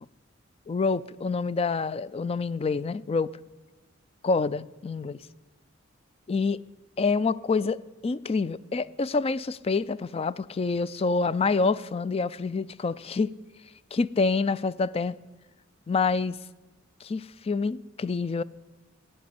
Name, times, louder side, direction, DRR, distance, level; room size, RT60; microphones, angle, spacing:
voice 1, 0.7-3.3 4.2-5.2 6.3-6.6 7.0-13.3 13.9-15.2 15.9-16.4 17.0-18.4, left 4 dB, 30° left, 0.4 m, -27 dB
13.5 x 8.5 x 9.7 m
head